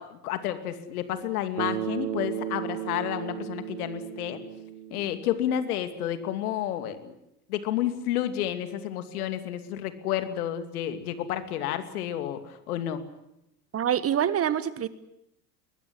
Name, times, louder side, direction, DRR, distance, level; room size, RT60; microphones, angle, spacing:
voice 1, 0.0-4.4 4.9-7.1 7.5-13.0, left 11 dB, 70° left, 10 dB, 2.7 m, -30 dB
Bass guitar, 1.6-5.8, right 11 dB, 75° right, 1.3 m, -35 dB
voice 2, 13.7-14.9, right 9 dB, 30° right, 15 dB, 1.5 m, -25 dB
22.0 x 21.0 x 9.9 m, 0.81 s
hypercardioid pair, 85°, 47 cm